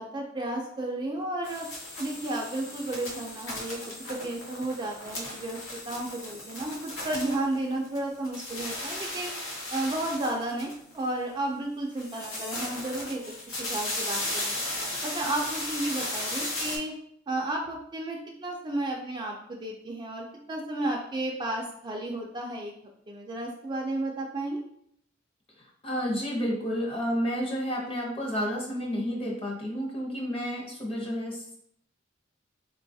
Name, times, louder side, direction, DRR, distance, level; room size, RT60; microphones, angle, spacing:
voice 1, 0.0-1.7 2.0-5.6 5.8-9.3 9.7-13.2 13.5-14.6 15.0-16.9 17.3-22.7 23.1-24.6, right 1 dB, 20° right, 0 dB, 0.3 m, -33 dB
sound 1, 1.4-8.0 8.2-11.1 11.9-16.8, left 1 dB, 85° left, 0.8 m, -36 dB
voice 2, 25.8-31.5, equal, 30° left, -2 dB, 0.7 m, -30 dB
3.8 x 2.3 x 2.6 m, 0.69 s
head